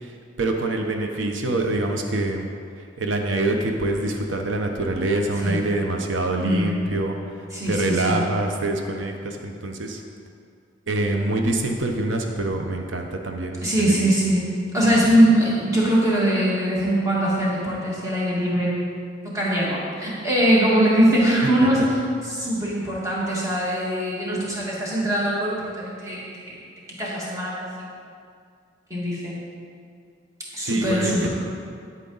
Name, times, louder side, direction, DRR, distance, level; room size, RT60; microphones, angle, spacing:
voice 1, 0.0-2.5 2.8-7.2 7.7-10.0 10.9-14.1 30.6-31.3, right 2 dB, 85° right, 3 dB, 0.8 m, -25 dB
voice 2, 6.4-6.8 7.5-8.2 13.6-18.8 19.2-21.8 22.2-26.6 27.0-27.9 28.9-29.4 30.5-31.3, right 1 dB, 15° right, -7 dB, 1.9 m, -22 dB
9.8 x 8.5 x 4.0 m, 2.3 s
head